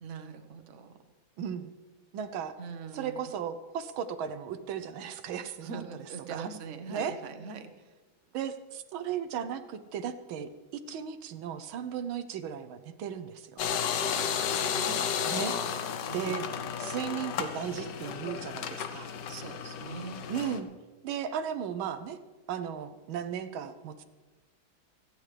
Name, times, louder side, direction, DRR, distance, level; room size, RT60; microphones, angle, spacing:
voice 1, 0.0-0.9 2.6-3.3 5.6-7.7 14.1-15.1 16.1-16.7 19.3-20.2, right 5 dB, 45° right, 6 dB, 1.2 m, -42 dB
voice 2, 1.4-1.7 2.1-2.6 2.9-5.8 6.3-6.5 6.9-7.2 8.3-13.6 15.3-15.6 16.1-16.4 16.8-19.1 20.3-20.7 21.0-22.2 22.5-24.0, right 8 dB, 85° right, 10 dB, 1.6 m, -36 dB
sound 1, 13.6-20.6, left 7 dB, 65° left, 1.4 m, -33 dB
28.0 x 9.8 x 3.3 m, 1.2 s
omnidirectional pair, 2.2 m